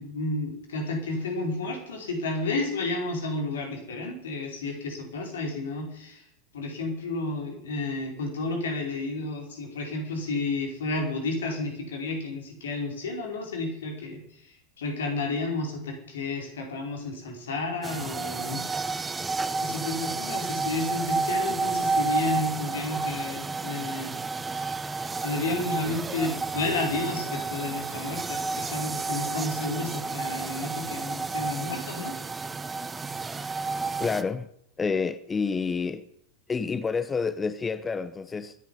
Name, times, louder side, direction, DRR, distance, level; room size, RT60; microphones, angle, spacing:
voice 1, 0.0-6.2 6.5-18.8 19.6-24.1 24.6-24.7 25.2-32.2, left 2 dB, 60° left, 4.9 m, -31 dB
sound 1, 17.8-34.2, right 4 dB, 15° right, 0.9 m, -31 dB
voice 2, 34.0-34.5 34.8-36.0 36.5-38.5, left 5 dB, 15° left, 0.8 m, -28 dB
23.5 x 10.5 x 5.4 m
figure-of-eight pair, 90°, 0 cm